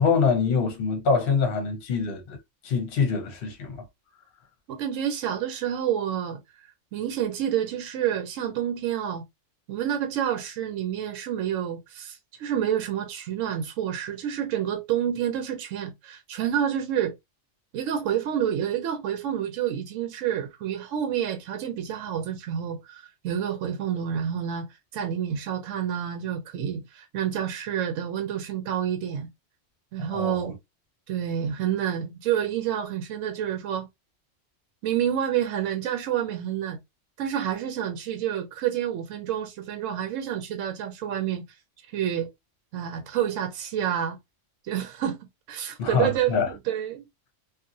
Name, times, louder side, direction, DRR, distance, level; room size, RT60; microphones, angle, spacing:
voice 1, 0.0-2.4 2.6-3.8 30.0-30.5 45.8-46.5, left 5 dB, 55° left, 0.9 m, -25 dB
voice 2, 4.7-9.2 9.7-17.1 17.7-24.7 24.9-29.3 29.9-30.6 31.1-33.9 34.8-36.8 37.2-41.4 41.9-42.3 42.7-44.2 44.6-45.2 45.5-47.0, right 9 dB, 85° right, 1.0 m, -28 dB
2.8 x 2.4 x 2.5 m
omnidirectional pair, 1.3 m